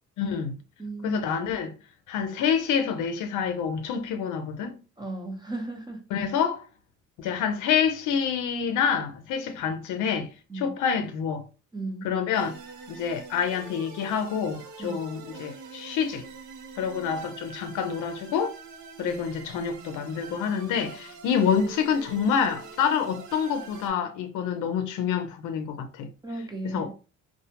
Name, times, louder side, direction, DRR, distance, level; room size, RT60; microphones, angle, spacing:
voice 1, 0.2-0.6 1.0-1.7 2.1-4.7 6.1-6.6 7.2-10.3 10.6-11.4 12.0-12.6 12.9-16.2 16.8-18.5 19.0-26.1 26.7-26.9, left 7 dB, 85° left, 0.5 m, -27 dB
voice 2, 0.8-1.2 5.0-6.1 10.5-10.8 11.7-12.1 14.8-15.0 26.2-26.9, right 2 dB, 15° right, 0.6 m, -35 dB
sound 1, 12.3-23.9, right 4 dB, 75° right, 0.6 m, -44 dB
2.2 x 2.0 x 2.8 m
cardioid pair, 90°, 30 cm